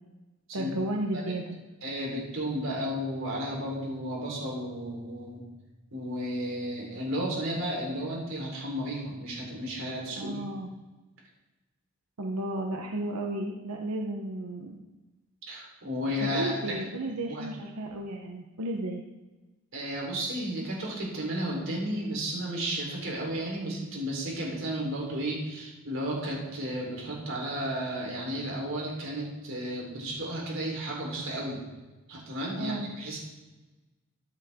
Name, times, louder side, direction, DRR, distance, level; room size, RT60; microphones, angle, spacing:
voice 1, 0.5-1.6 10.2-10.7 12.2-14.8 16.2-19.0 32.5-32.9, right 1 dB, 90° right, 1 dB, 1.0 m, -33 dB
voice 2, 1.8-5.4 5.9-10.4 15.5-16.7 17.2-17.5 19.7-31.6 32.1-33.2, equal, 60° right, -3 dB, 4.0 m, -33 dB
14.0 x 8.0 x 3.7 m, 1.2 s
head